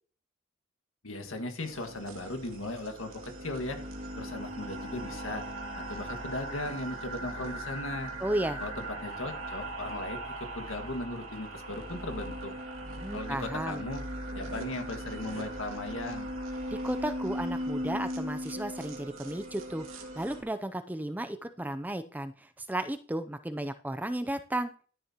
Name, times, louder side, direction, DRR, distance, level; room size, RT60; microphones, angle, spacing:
voice 1, 1.0-3.8 4.2-5.4 5.7-8.1 8.6-12.5 13.1-14.0 14.3-16.3, left 2 dB, 85° left, 6 dB, 1.8 m, -37 dB
sound 1, 1.6-20.4, right 1 dB, 80° right, 2.2 m, -39 dB
voice 2, 8.2-8.6 13.0-13.8 16.7-24.7, right 1 dB, 10° right, 9 dB, 0.4 m, -34 dB
12.0 x 10.0 x 2.9 m, 0.42 s
head